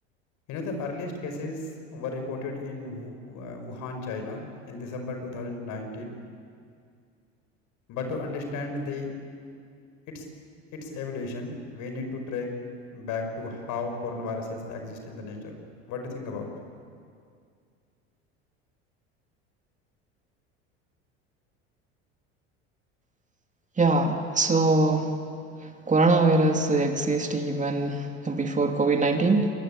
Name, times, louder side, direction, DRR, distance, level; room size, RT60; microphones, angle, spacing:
voice 1, 0.5-6.1 7.9-9.1 10.1-10.3 10.7-12.5 12.9-15.6 15.9-16.5, left 3 dB, 60° left, 5 dB, 5.7 m, -34 dB
voice 2, 23.8-25.1 25.9-29.5, right 2 dB, 20° right, 4 dB, 2.7 m, -22 dB
27.0 x 21.5 x 8.7 m, 2.3 s
hypercardioid pair, 75°, 34 cm